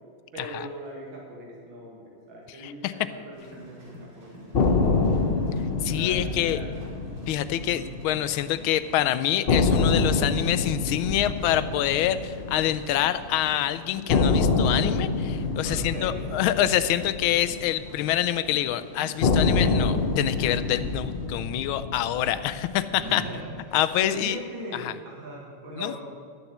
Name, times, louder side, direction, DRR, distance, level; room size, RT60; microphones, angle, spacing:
voice 1, 0.3-5.3 5.8-6.8 7.6-7.9 15.6-16.2 23.0-26.1, right 1 dB, 75° right, -3 dB, 2.8 m, -40 dB
sound 1, 3.3-21.3, equal, 55° right, 4.3 m, -47 dB
sound 2, 4.5-8.6 8.9-9.0 9.5-13.6 14.1-18.5 19.2-23.6, left 4 dB, 55° left, 0.6 m, -26 dB
voice 2, 5.8-6.6 7.3-23.2 23.7-24.4 24.8-24.9 25.8-25.9, left 12 dB, 90° left, 13 dB, 1.4 m, -26 dB
12.0 x 7.1 x 7.9 m, 2.3 s
omnidirectional pair, 2.2 m